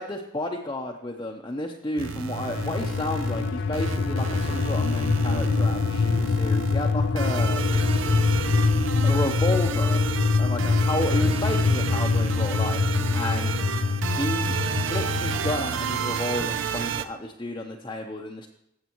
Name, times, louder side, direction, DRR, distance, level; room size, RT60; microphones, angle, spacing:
voice 1, 0.0-7.6 9.0-10.1 10.4-12.8 13.1-13.5 14.2-14.6 14.9-18.5, left 1 dB, 20° left, -1 dB, 0.6 m, -31 dB
sound 1, 2.0-17.0, right 6 dB, 85° right, 0.6 m, -31 dB
sound 2, 2.3-15.6, left 4 dB, 90° left, 0.6 m, -24 dB
15.5 x 7.3 x 3.0 m, 0.80 s
head